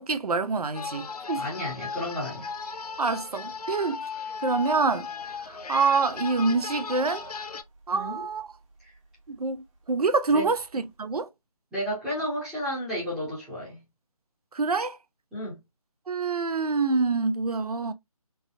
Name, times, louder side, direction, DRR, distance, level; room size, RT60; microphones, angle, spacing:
voice 1, 0.0-1.4 3.0-4.0 4.4-5.1 5.5-7.2 7.9-8.5 9.3-11.3 14.5-15.0 16.1-17.9, right 4 dB, 75° right, 0.6 m, -26 dB
sound 1, 0.7-7.6, left 5 dB, 80° left, 0.5 m, -36 dB
voice 2, 1.3-2.5 7.9-8.2 8.8-8.9 10.3-10.5 11.7-13.8 15.3-15.6, equal, ahead, 0.7 m, -32 dB
sound 2, 2.0-3.7 4.0-4.1 4.6-9.0 9.5-9.6 10.4-10.5 10.7-10.8, equal, 55° right, 1.2 m, -48 dB
3.3 x 2.2 x 2.6 m
figure-of-eight pair, 165°, 19 cm